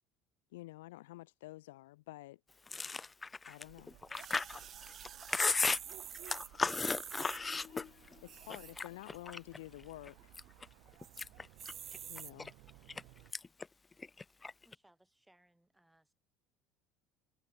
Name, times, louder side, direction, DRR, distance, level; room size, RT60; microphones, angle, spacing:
voice 1, 0.5-2.4 3.4-3.9 8.3-10.3 12.1-12.5, left 18 dB, 70° left, 0.6 m, -50 dB
Chewing mastication, 2.7-8.1 8.5-9.6 10.1-10.6 11.0-13.0 13.3-13.6 13.9-14.7, left 4 dB, 20° left, 0.5 m, -35 dB
sound 1, 3.6-13.3, right 22 dB, 60° right, 5.4 m, -60 dB
sound 2, 4.1-7.4 8.2-8.9 9.4-9.5 9.6-9.7 10.1-10.5 11.0-11.2 11.6-12.3 13.0-13.1, right 9 dB, 40° right, 0.5 m, -49 dB
voice 2, 5.3-9.6 10.6-10.9, left 10 dB, 40° left, 1.7 m, -61 dB
voice 3, 14.6-16.1, right 1 dB, 5° right, 6.9 m, -68 dB
figure-of-eight pair, 65°, 0 cm